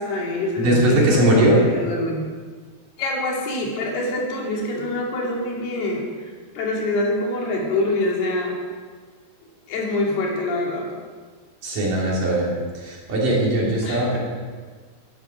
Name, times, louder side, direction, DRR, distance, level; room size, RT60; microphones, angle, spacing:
voice 1, 0.0-2.2 3.0-8.6 9.7-10.9 13.8-14.2, left 2 dB, 75° left, -2 dB, 4.5 m, -25 dB
voice 2, 0.6-1.6 11.6-12.5 12.8-14.2, right 1 dB, 55° right, -4 dB, 4.5 m, -19 dB
14.0 x 11.5 x 6.2 m, 1.5 s
omnidirectional pair, 4.7 m